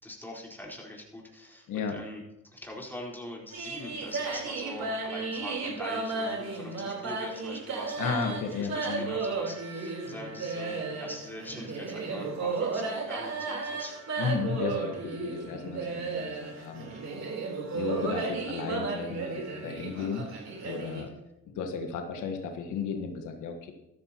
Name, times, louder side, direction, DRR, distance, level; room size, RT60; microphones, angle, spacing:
voice 1, 0.0-2.2 2.5-13.9, left 1 dB, 5° left, -2 dB, 4.1 m, -42 dB
sound 1, 3.5-21.0, right 4 dB, 60° right, 3.8 m, -34 dB
voice 2, 8.0-9.1 14.2-16.9 17.7-20.3 20.6-21.1 21.6-23.7, left 5 dB, 85° left, 4 dB, 1.5 m, -34 dB
14.0 x 13.5 x 3.0 m, 0.90 s
cardioid pair, 90°, 30 cm